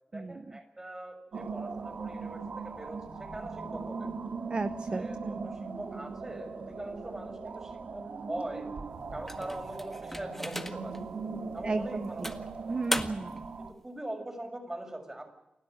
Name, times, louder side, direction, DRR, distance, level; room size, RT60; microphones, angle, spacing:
voice 1, 0.1-4.1 4.9-8.7 9.1-11.1 11.5-12.4 13.6-15.3, right 1 dB, 20° right, 4 dB, 6.4 m, -42 dB
sound 1, 1.3-13.7, right 4 dB, 70° right, 2.2 m, -39 dB
voice 2, 4.5-5.3 11.6-12.1 12.7-13.4, right 3 dB, 40° right, 12 dB, 0.9 m, -34 dB
sound 2, 9.3-11.0 11.5-11.7 12.2-13.4, left 1 dB, 10° left, 1.8 m, -36 dB
29.0 x 12.5 x 9.0 m, 0.91 s
wide cardioid pair, 80°, 3 cm